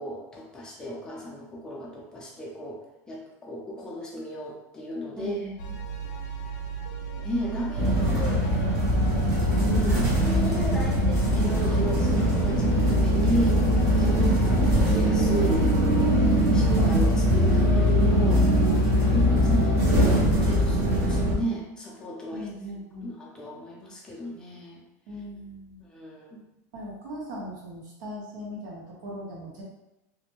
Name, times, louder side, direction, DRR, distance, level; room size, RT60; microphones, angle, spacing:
voice 1, 0.0-2.8 3.1-5.5 7.2-8.5 9.6-14.3 14.7-15.7 16.5-18.5 19.0-22.5 23.0-24.8 25.8-26.4, equal, 5° left, -4 dB, 0.5 m, -34 dB
voice 2, 5.2-5.5 5.8-5.9 14.2-14.6 22.3-23.1 25.1-25.8 26.7-29.6, equal, 90° right, -4 dB, 1.0 m, -39 dB
sound 1, 5.6-19.2, right 6 dB, 80° left, 0.4 m, -35 dB
sound 2, 7.8-21.4, equal, 35° right, 1.0 m, -22 dB
2.5 x 2.1 x 2.9 m, 0.91 s
supercardioid pair, 160°, 9 cm